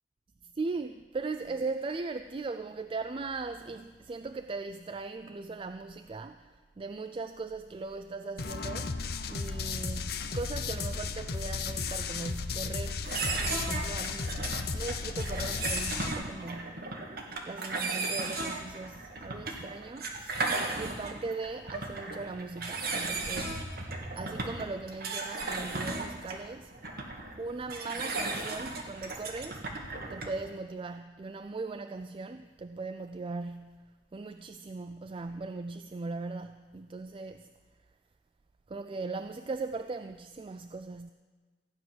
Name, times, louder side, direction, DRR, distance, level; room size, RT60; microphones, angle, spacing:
voice 1, 0.4-9.0 9.3-17.0 17.5-23.6 24.2-26.7 27.4-29.6 30.1-37.5 38.7-41.1, right 3 dB, 30° right, 0.3 m, -39 dB
sound 1, 8.4-16.1, left 4 dB, 55° left, 0.7 m, -34 dB
sound 2, 13.0-30.5, right 3 dB, 55° right, 1.7 m, -35 dB
15.5 x 6.0 x 9.3 m
head